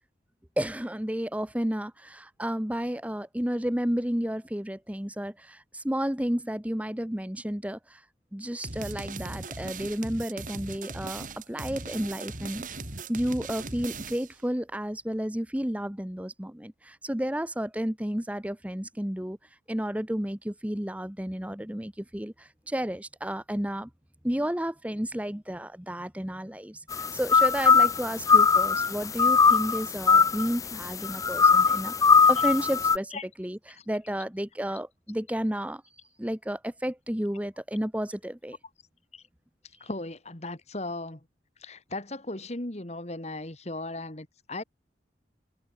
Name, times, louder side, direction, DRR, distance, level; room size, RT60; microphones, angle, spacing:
voice 1, 0.6-8.0 8.3-12.6 13.1-19.4 19.7-23.9 24.2-35.8 36.2-38.6 39.8-39.9, equal, 10° right, 1.0 m, -32 dB
sound 1, 8.6-14.4, right 3 dB, 45° right, 3.3 m, -39 dB
sound 2, 26.9-33.0, left 5 dB, 20° left, 0.3 m, -21 dB
voice 2, 39.8-41.2 41.6-44.6, left 2 dB, 35° left, 2.0 m, -37 dB
head